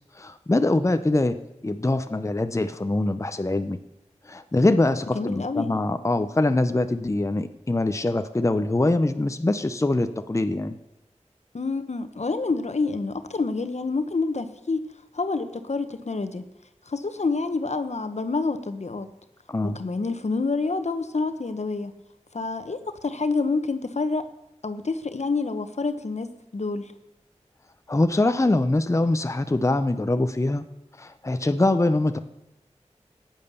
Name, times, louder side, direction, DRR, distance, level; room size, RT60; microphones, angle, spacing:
voice 1, 0.2-1.4 1.6-3.8 4.3-10.8 19.5-19.8 27.9-30.6 31.0-32.2, left 2 dB, 25° left, 9 dB, 0.6 m, -23 dB
voice 2, 5.1-5.7 11.5-14.8 15.1-16.4 16.9-19.1 19.6-21.9 22.3-24.2 24.6-26.3 26.5-26.9, left 3 dB, 70° left, 10 dB, 1.1 m, -27 dB
15.0 x 9.0 x 6.9 m, 0.91 s
wide cardioid pair, 65°, 12 cm